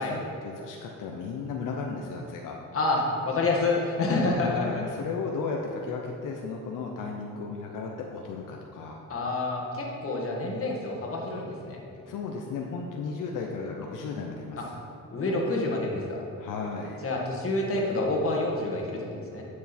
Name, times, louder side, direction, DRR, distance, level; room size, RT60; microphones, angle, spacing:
voice 1, 0.0-2.6 4.4-9.0 12.1-14.8 16.4-17.0, left 4 dB, 80° left, 0 dB, 0.9 m, -34 dB
voice 2, 2.7-4.6 9.1-11.8 14.6-14.7 15.1-16.2 17.0-19.4, left 2 dB, 45° left, -2 dB, 1.8 m, -28 dB
9.4 x 6.3 x 4.4 m, 2.7 s
cardioid pair, 105°, 32 cm